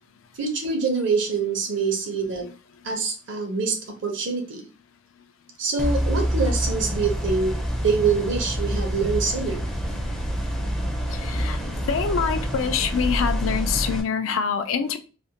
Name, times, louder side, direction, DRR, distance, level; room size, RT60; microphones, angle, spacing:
voice 1, 0.4-2.5 2.8-4.6 5.6-9.7, right 4 dB, 60° right, 0.7 m, -25 dB
sound 1, 5.8-14.0, equal, 5° left, 0.4 m, -27 dB
voice 2, 11.1-15.0, left 6 dB, 75° left, 0.4 m, -25 dB
2.5 x 2.1 x 2.8 m
head